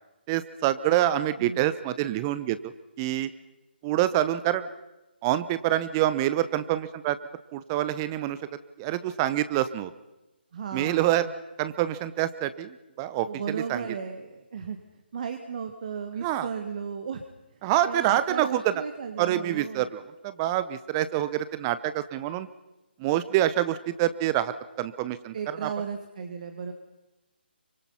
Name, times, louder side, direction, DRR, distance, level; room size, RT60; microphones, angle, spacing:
voice 1, 0.3-2.7 3.0-3.3 3.8-4.7 5.2-7.2 7.5-8.4 8.8-9.9 10.7-11.3 11.6-13.9 16.2-16.5 17.6-18.7 19.2-22.5 23.0-25.3 25.6-25.7, right 13 dB, 20° right, 14 dB, 0.7 m, -26 dB
voice 2, 10.5-11.3 13.2-14.8 15.1-17.2 17.8-19.9 25.3-26.7, right 6 dB, 45° right, 6 dB, 1.8 m, -35 dB
27.0 x 24.5 x 5.6 m, 1.0 s
figure-of-eight pair, 145°, 6 cm